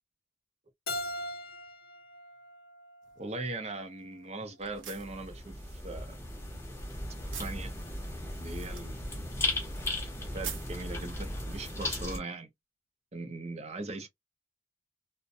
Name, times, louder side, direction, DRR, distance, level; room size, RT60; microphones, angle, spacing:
Keyboard (musical), 0.9-3.7, left 1 dB, 50° left, 0.6 m, -41 dB
sound 1, 3.0-11.6, right 8 dB, 75° right, 0.6 m, -49 dB
voice 1, 3.2-6.1 7.4-7.7 8.4-9.2 10.3-12.5 13.1-14.1, right 2 dB, 30° right, 0.5 m, -39 dB
sound 2, 4.6-12.2, left 2 dB, 15° left, 0.6 m, -37 dB
2.5 x 2.1 x 2.6 m
head